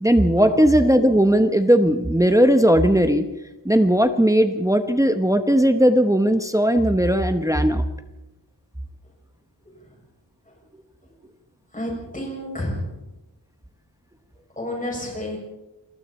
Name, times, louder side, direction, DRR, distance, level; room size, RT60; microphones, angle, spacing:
voice 1, 0.0-3.3 3.6-7.8, equal, 10° right, 8 dB, 1.0 m, -17 dB
voice 2, 11.7-13.0 14.6-15.4, left 1 dB, 20° left, -1 dB, 6.9 m, -30 dB
28.5 x 21.5 x 4.3 m, 0.95 s
wide cardioid pair, 170°, 43 cm